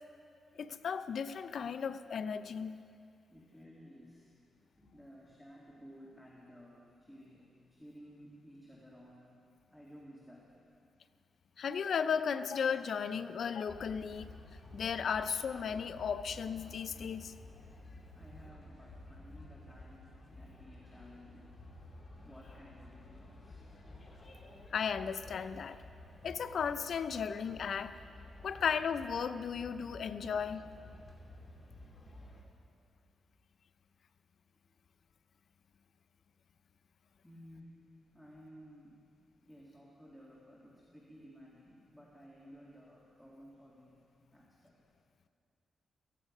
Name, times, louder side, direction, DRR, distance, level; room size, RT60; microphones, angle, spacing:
voice 1, 0.6-2.8 11.6-14.3 14.7-17.3 24.7-25.8 26.2-27.9 28.4-30.6, left 6 dB, 65° left, 12 dB, 0.5 m, -35 dB
voice 2, 3.3-9.3 9.7-10.5 15.3-15.5 18.1-23.8 34.6-34.7 37.2-37.8 38.1-39.1 39.4-44.1 44.3-44.7, equal, 5° left, -4 dB, 2.3 m, -56 dB
sound 1, 13.7-32.4, left 1 dB, 35° left, 2.6 m, -53 dB
16.5 x 15.0 x 5.4 m, 2.5 s
cardioid pair, 105°, 0 cm